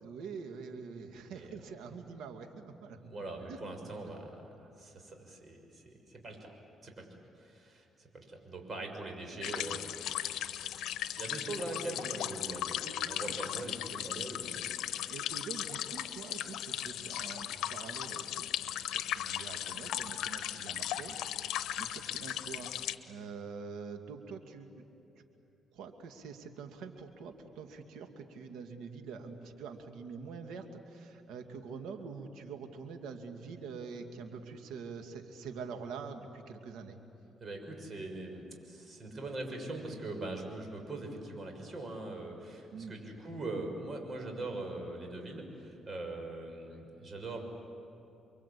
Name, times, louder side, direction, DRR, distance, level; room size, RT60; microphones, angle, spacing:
voice 1, 0.0-3.0 3.4-3.6 3.9-4.0 12.8-12.9 13.2-13.4 15.1-18.5 18.9-24.8 25.2-25.3 25.7-37.0 42.7-42.9, right 5 dB, 85° right, 5 dB, 2.4 m, -45 dB
voice 2, 3.0-6.5 6.8-10.8 11.2-14.7 37.4-47.4, right 2 dB, 40° right, 3 dB, 6.5 m, -42 dB
sound 1, 9.4-23.0, left 11 dB, 85° left, 0.9 m, -37 dB
29.5 x 23.0 x 8.6 m, 3.0 s
cardioid pair, 90°, 0 cm